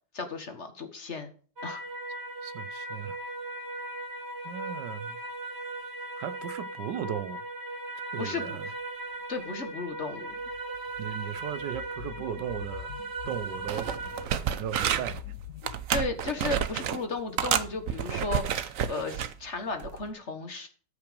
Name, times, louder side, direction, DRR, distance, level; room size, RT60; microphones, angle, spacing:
voice 1, 0.1-1.3 1.6-1.8 8.2-8.6 9.3-10.3 15.9-20.7, left 4 dB, 40° left, 1.7 m, -34 dB
sound 1, 1.6-14.2, right 2 dB, 40° right, 1.5 m, -38 dB
voice 2, 2.4-3.2 4.4-5.2 6.2-7.4 8.1-8.7 11.0-12.9 13.3-13.9 14.6-15.2, right 10 dB, 85° right, 1.4 m, -36 dB
sound 2, 10.1-15.8, left 13 dB, 65° left, 1.3 m, -46 dB
sound 3, 13.3-13.4 13.7-15.2 15.6-17.0 17.4-19.3 19.8-20.0, right 9 dB, 60° right, 1.0 m, -30 dB
14.0 x 5.7 x 5.2 m
omnidirectional pair, 1.9 m